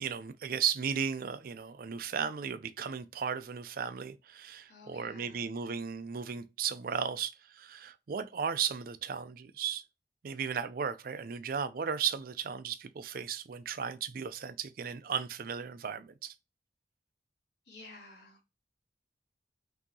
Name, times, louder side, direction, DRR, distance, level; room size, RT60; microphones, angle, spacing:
voice 1, 0.0-9.8 10.2-16.3, right 7 dB, 55° right, 0.4 m, -35 dB
voice 2, 4.7-5.5 17.7-18.5, left 2 dB, 70° left, 2.7 m, -52 dB
6.0 x 2.8 x 2.7 m
head